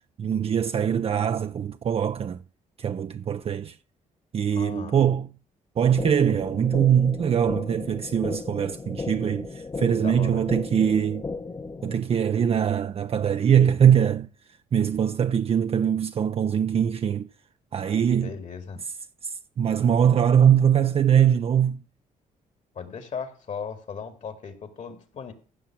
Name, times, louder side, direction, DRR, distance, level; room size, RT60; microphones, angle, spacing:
voice 1, 0.2-2.4 2.8-3.8 4.3-5.3 5.8-11.2 11.8-17.3 17.7-18.3 19.2-21.8, right 8 dB, 45° right, 0.5 m, -22 dB
voice 2, 4.5-5.1 9.9-10.4 18.1-18.8 22.7-25.3, left 6 dB, 55° left, 2.3 m, -37 dB
sound 1, 6.0-12.0, left 3 dB, 25° left, 0.9 m, -35 dB
15.0 x 6.1 x 6.1 m
cardioid pair, 80°, 15 cm